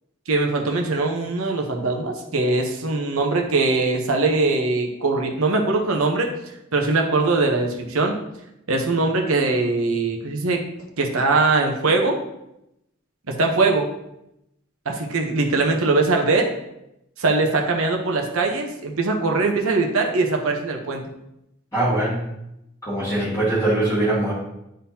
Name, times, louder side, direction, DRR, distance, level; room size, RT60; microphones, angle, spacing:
voice 1, 0.3-6.3 6.7-8.2 8.7-10.6 11.0-12.2 13.3-13.9 14.9-16.5 17.2-21.0, right 3 dB, 90° right, 2 dB, 1.0 m, -21 dB
voice 2, 21.7-22.3 22.8-24.3, right 1 dB, 15° left, -11 dB, 2.1 m, -22 dB
10.0 x 3.8 x 2.9 m, 0.85 s
head